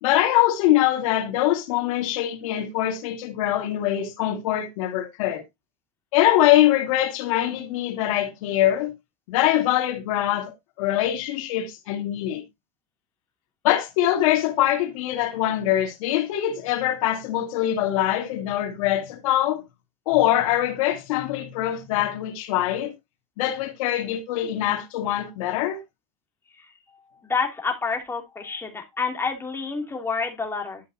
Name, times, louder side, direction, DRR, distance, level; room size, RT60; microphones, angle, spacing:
voice 1, 0.0-5.4 6.1-8.9 9.3-12.4 13.6-19.6 20.1-22.9 23.4-25.8, left 13 dB, 80° left, 2.2 m, -23 dB
voice 2, 27.2-30.8, left 4 dB, 15° left, 2.9 m, -28 dB
12.0 x 5.7 x 2.8 m
supercardioid pair, 125°, 17 cm